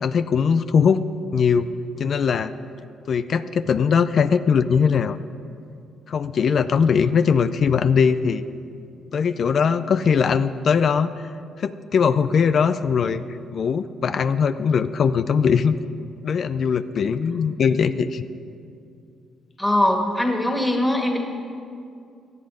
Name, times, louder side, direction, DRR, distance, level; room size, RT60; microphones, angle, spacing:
voice 1, 0.0-1.0 1.3-1.7 2.0-2.5 3.1-5.2 6.1-8.4 9.1-11.1 11.6-13.2 13.5-15.8 16.2-18.2, left 6 dB, 55° left, 12 dB, 0.5 m, -20 dB
voice 2, 19.6-21.2, left 1 dB, 5° left, 2 dB, 2.1 m, -21 dB
18.5 x 12.0 x 5.1 m, 2.5 s
cardioid pair, 90°, 0 cm